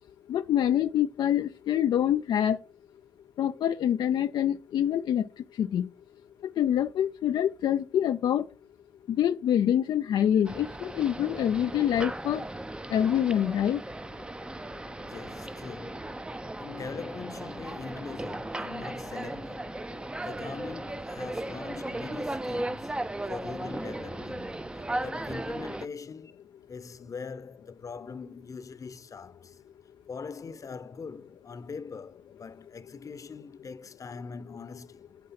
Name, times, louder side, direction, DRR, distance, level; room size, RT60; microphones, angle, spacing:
voice 1, 0.3-2.6 3.4-5.2 5.6-5.9 6.6-8.4 9.2-12.4 12.9-13.8, left 10 dB, 75° left, 0.3 m, -25 dB
sound 1, 10.4-25.9, right 1 dB, 15° right, 0.5 m, -36 dB
voice 2, 15.0-19.8 20.2-26.3 26.7-29.6 30.1-35.1, left 5 dB, 45° left, 0.8 m, -42 dB
9.5 x 3.8 x 5.7 m
cardioid pair, 65°, 8 cm